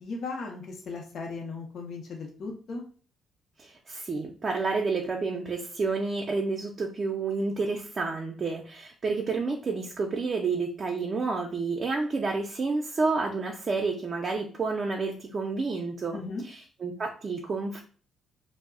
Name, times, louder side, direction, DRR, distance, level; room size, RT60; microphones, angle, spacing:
voice 1, 0.0-2.8 16.1-16.4, left 3 dB, 60° left, 1 dB, 0.6 m, -37 dB
voice 2, 3.6-16.2 16.4-17.8, right 4 dB, 40° right, 0 dB, 0.5 m, -30 dB
2.2 x 2.0 x 3.6 m, 0.39 s
cardioid pair, 90°, 0 cm